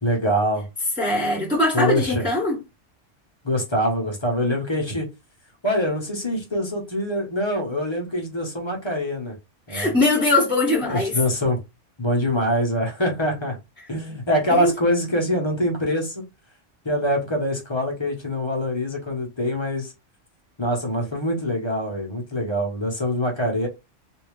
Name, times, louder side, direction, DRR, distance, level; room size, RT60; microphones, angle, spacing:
voice 1, 0.0-0.7 1.7-2.3 3.4-5.1 5.6-9.3 9.7-9.9 10.8-11.6 12.0-13.6 13.9-16.2 16.8-19.9 20.6-23.7, equal, 25° left, 1.0 m, -24 dB
voice 2, 1.0-2.6 9.7-11.2 14.5-14.7, left 2 dB, 5° right, 1.1 m, -21 dB
3.4 x 2.7 x 3.1 m
omnidirectional pair, 1.3 m